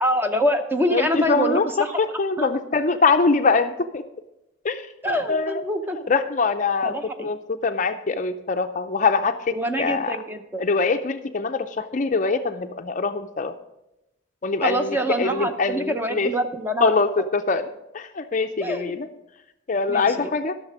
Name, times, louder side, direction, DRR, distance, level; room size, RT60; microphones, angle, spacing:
voice 1, 0.0-1.9 2.4-2.5 5.0-6.0 6.8-7.3 9.5-10.6 14.6-16.9 18.6-18.9 19.9-20.1, equal, 10° right, 6 dB, 0.7 m, -25 dB
voice 2, 0.9-1.7 2.0-4.0 4.6-5.6 6.1-6.9 7.2-10.2 10.6-13.5 14.4-16.3 16.8-17.7 17.9-19.1 19.7-20.5, left 4 dB, 40° left, 8 dB, 0.5 m, -23 dB
12.0 x 6.6 x 6.1 m, 0.91 s
head